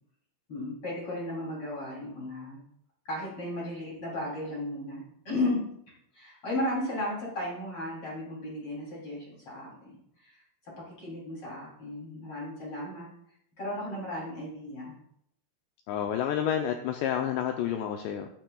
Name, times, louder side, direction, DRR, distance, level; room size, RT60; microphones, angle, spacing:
voice 1, 0.5-2.6 3.0-5.6 6.1-9.9 10.2-10.4 10.8-13.1 13.6-15.0, left 1 dB, 30° left, -5 dB, 3.3 m, -35 dB
voice 2, 15.9-18.3, left 9 dB, 85° left, 5 dB, 2.4 m, -29 dB
14.0 x 10.0 x 2.3 m, 0.72 s
omnidirectional pair, 5.6 m